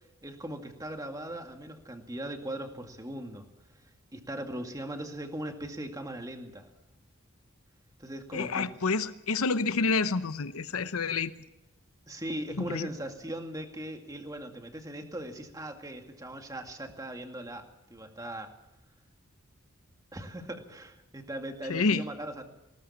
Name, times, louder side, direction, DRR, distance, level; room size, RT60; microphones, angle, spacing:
voice 1, 0.2-3.5 4.1-6.7 8.0-8.7 12.1-17.6 17.9-18.5 20.1-22.4, right 1 dB, 15° right, 4 dB, 2.2 m, -39 dB
voice 2, 8.3-11.3 12.6-12.9 21.7-22.0, left 4 dB, 85° left, 12 dB, 0.8 m, -28 dB
20.0 x 18.5 x 7.3 m, 0.92 s
head